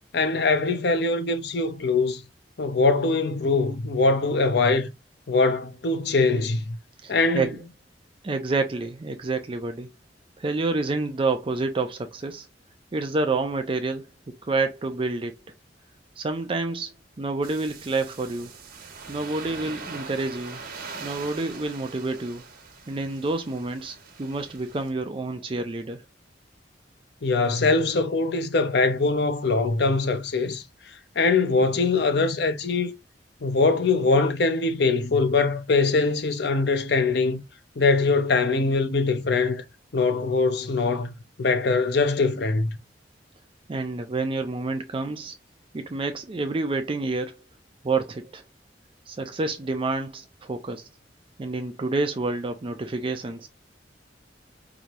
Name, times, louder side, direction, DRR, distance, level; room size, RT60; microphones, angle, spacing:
voice 1, 0.1-2.2 2.6-4.9 5.3-6.8 7.1-7.5 27.2-30.6 31.2-32.9 33.4-37.4 37.8-39.6 39.9-41.1 41.4-42.7, left 3 dB, 65° left, 0.7 m, -22 dB
voice 2, 7.0-7.6 8.2-9.9 10.4-12.5 12.9-14.1 14.4-15.3 16.2-18.5 19.1-20.6 21.0-22.4 22.9-26.0 43.7-45.3 45.7-47.4 47.8-48.4 49.1-50.9 51.4-53.5, right 3 dB, 30° right, 0.5 m, -28 dB
sound 1, 17.4-24.9, right 4 dB, 55° right, 1.2 m, -42 dB
4.9 x 2.7 x 2.9 m
head